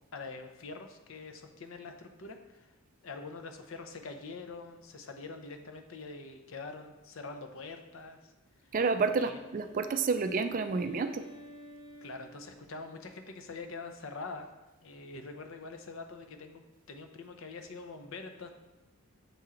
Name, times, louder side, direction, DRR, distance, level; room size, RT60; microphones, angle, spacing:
voice 1, 0.1-2.8 3.0-8.3 8.6-8.7 9.2-9.4 12.0-14.5 14.8-18.5, left 3 dB, 60° left, 6 dB, 0.6 m, -44 dB
Wind instrument woodwind instrument, 8.6-13.2, right 1 dB, 90° left, 2.2 m, -52 dB
voice 2, 8.7-11.2, right 4 dB, 35° right, 9 dB, 0.3 m, -29 dB
6.9 x 4.4 x 3.7 m, 1.1 s
head